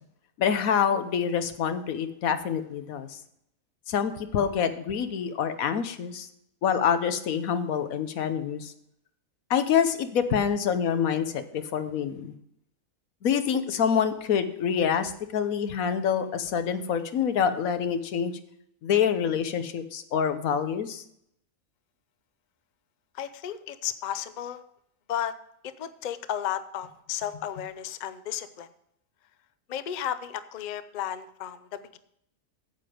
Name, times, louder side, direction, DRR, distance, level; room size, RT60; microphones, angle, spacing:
voice 1, 0.4-3.2 3.9-6.3 6.6-8.7 9.5-12.3 13.2-18.3 18.8-21.0, left 7 dB, 90° left, 10 dB, 1.3 m, -26 dB
voice 2, 23.1-24.6 25.1-25.3 25.6-28.7 29.7-32.0, left 10 dB, 50° left, 13 dB, 0.5 m, -33 dB
9.4 x 7.7 x 5.0 m, 0.74 s
omnidirectional pair, 1.4 m